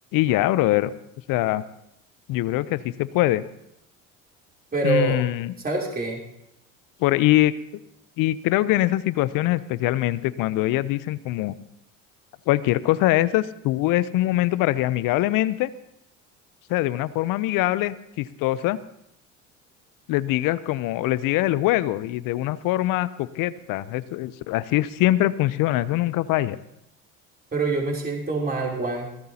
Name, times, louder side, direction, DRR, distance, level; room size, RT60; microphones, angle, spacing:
voice 1, 0.1-0.9 1.3-1.6 2.3-3.4 4.8-5.5 7.0-7.5 8.2-11.5 12.5-15.7 16.7-18.8 20.1-26.6, left 16 dB, 55° left, 17 dB, 0.7 m, -23 dB
voice 2, 4.7-5.2 5.6-6.2 27.5-29.2, right 3 dB, 25° right, -2 dB, 3.5 m, -25 dB
24.0 x 16.0 x 2.9 m, 0.81 s
hypercardioid pair, 70°, 39 cm